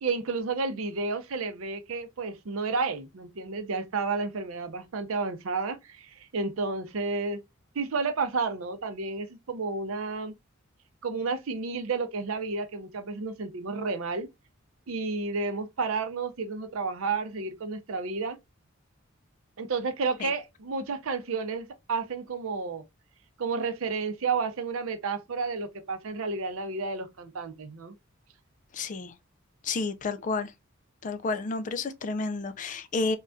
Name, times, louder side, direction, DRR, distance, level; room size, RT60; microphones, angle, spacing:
voice 1, 0.0-6.0 6.3-7.4 7.8-10.3 11.0-14.3 14.9-18.4 19.6-22.8 23.4-27.9, right 4 dB, 75° right, 0.5 m, -31 dB
voice 2, 28.7-29.1 29.6-30.5 31.0-33.2, left 3 dB, 35° left, 0.3 m, -30 dB
3.3 x 2.3 x 2.5 m
head